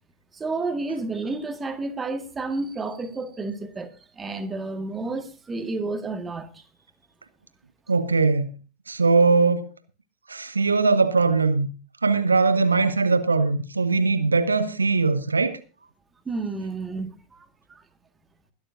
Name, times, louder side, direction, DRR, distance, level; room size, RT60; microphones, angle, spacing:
voice 1, 0.3-6.6 16.3-17.8, right 3 dB, 15° right, 1.8 m, -31 dB
voice 2, 7.9-8.5 8.9-9.7 10.3-11.7 12.0-15.6, right 4 dB, 75° right, 0.9 m, -20 dB
21.0 x 11.5 x 2.6 m
figure-of-eight pair, 90°, 0 cm